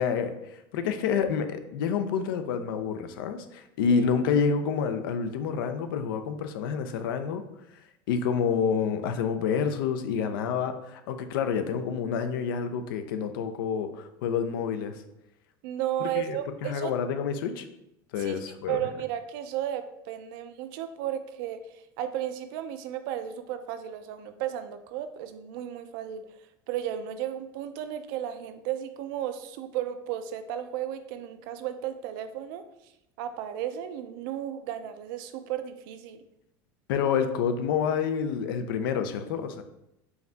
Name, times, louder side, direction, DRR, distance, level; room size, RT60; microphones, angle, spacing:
voice 1, 0.0-7.4 8.1-15.0 16.0-17.7 18.1-18.8 36.9-39.6, left 6 dB, 80° left, 9 dB, 0.5 m, -28 dB
voice 2, 15.6-16.9 18.2-26.2 26.7-32.6 33.2-36.2, right 11 dB, 70° right, 10 dB, 0.4 m, -34 dB
4.7 x 2.7 x 3.3 m, 0.84 s
supercardioid pair, 110°, 12 cm